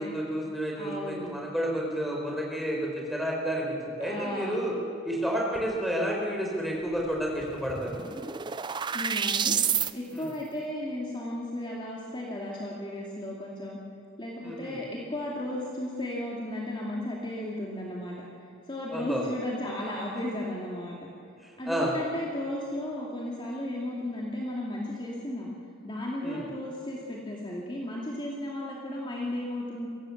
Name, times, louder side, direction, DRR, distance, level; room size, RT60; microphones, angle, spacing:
voice 1, 0.0-4.8 5.0-8.0 10.1-10.3 14.4-14.8 18.9-19.2 21.7-21.9 26.2-26.4, equal, ahead, -2 dB, 4.5 m, -30 dB
voice 2, 0.8-1.3 4.0-4.6 8.9-9.6 9.9-13.8 14.2-18.3 18.7-21.1 21.6-25.5 25.8-29.9, left 1 dB, 25° left, -4 dB, 2.5 m, -34 dB
sound 1, 7.0-7.1 7.4-9.9, right 7 dB, 25° right, 0.5 m, -29 dB
23.5 x 17.0 x 7.3 m, 2.5 s
head